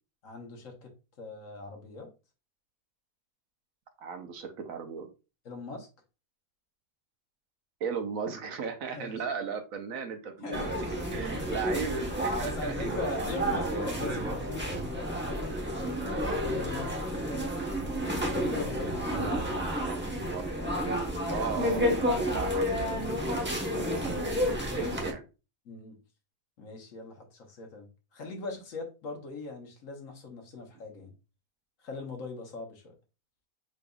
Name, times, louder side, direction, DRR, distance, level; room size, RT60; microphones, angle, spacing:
voice 1, 0.2-0.9 1.2-2.1 5.4-5.9 8.9-9.1 10.4-10.8 12.4-17.5 18.2-19.3 20.6-21.5 24.8-25.0 25.6-26.0 26.6-31.1 31.8-32.9, left 3 dB, 70° left, 2 dB, 1.4 m, -41 dB
voice 2, 4.0-5.1 7.8-13.8 19.1-20.8 21.3-23.0 23.2-25.2, right 6 dB, 75° right, 6 dB, 1.2 m, -37 dB
sound 1, 10.5-25.1, equal, 10° right, 0.8 m, -31 dB
5.1 x 4.0 x 2.3 m, 0.31 s
omnidirectional pair, 1.5 m